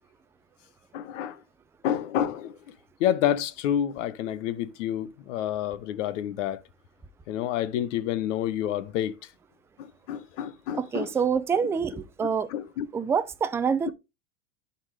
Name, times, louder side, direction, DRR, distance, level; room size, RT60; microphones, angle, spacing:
voice 1, 0.9-1.4 1.8-2.6 3.0-6.6 7.3-9.2 9.8-11.1 12.5-12.9, left 10 dB, 70° left, 1.1 m, -28 dB
voice 2, 10.7-12.5 12.9-13.9, right 6 dB, 5° right, 0.3 m, -26 dB
11.0 x 4.5 x 3.4 m
supercardioid pair, 115°, 38 cm